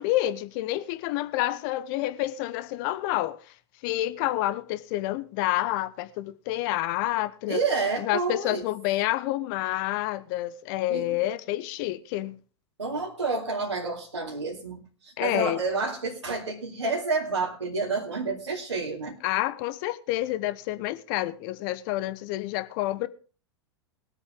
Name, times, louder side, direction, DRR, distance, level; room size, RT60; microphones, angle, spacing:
voice 1, 0.0-3.4 3.8-7.6 8.0-12.4 15.2-15.6 19.2-23.1, left 15 dB, 45° left, 1.0 m, -28 dB
voice 2, 7.5-8.6 10.9-11.1 12.8-19.2, right 3 dB, 85° right, 2.7 m, -29 dB
21.0 x 8.1 x 3.6 m
figure-of-eight pair, 95°, 15 cm